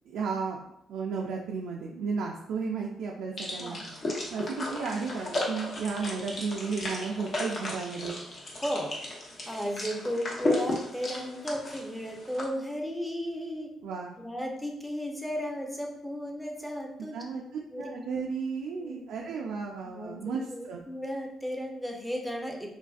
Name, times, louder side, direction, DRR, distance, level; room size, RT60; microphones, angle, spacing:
voice 1, 0.1-0.6 0.9-3.8 4.3-8.2 13.8-14.2 17.1-17.4 17.8-20.8, right 5 dB, 80° right, -1 dB, 0.3 m, -33 dB
sound 1, 3.4-12.4, left 2 dB, 50° left, 0.8 m, -35 dB
voice 2, 3.6-4.4 8.6-9.0 9.5-13.7 14.2-17.4 17.7-18.2 18.8-19.2 19.8-22.7, equal, ahead, 0 dB, 0.6 m, -35 dB
3.1 x 2.5 x 2.3 m, 0.80 s
cardioid pair, 90°, 0 cm